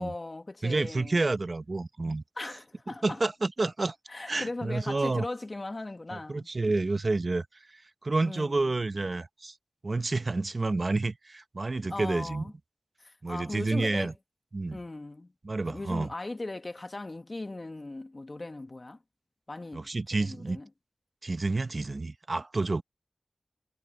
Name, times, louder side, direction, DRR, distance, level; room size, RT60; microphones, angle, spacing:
voice 1, 0.0-1.2 2.4-3.2 4.1-6.5 8.2-8.7 11.9-12.5 13.0-14.1 14.7-15.3 15.6-19.0 19.5-20.7, left 2 dB, 45° left, 1.6 m, -38 dB
voice 2, 0.6-2.2 3.0-4.0 4.3-5.2 6.1-7.5 7.7-9.5 9.8-12.5 13.2-14.1 14.5-14.8 15.4-16.1 19.7-20.6 21.2-22.8, right 3 dB, 55° right, 0.8 m, -29 dB
cardioid pair, 50°, 0 cm